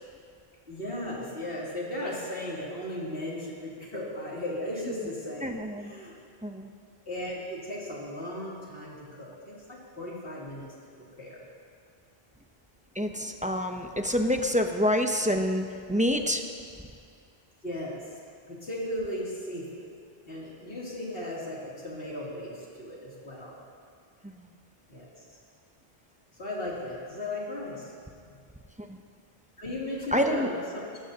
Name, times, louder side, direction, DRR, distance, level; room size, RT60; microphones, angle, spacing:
voice 1, 0.7-6.1 7.1-10.6 11.0-11.4 17.6-18.0 18.5-19.9 20.3-23.5 24.9-25.1 26.4-28.3 29.6-30.8, left 1 dB, 70° left, -6 dB, 3.1 m, -36 dB
voice 2, 5.4-5.9 6.4-6.7 13.0-16.4 24.2-24.5 28.8-29.0 30.1-30.5, equal, 10° right, 4 dB, 0.6 m, -27 dB
20.0 x 14.0 x 2.8 m, 2.2 s
omnidirectional pair, 1.0 m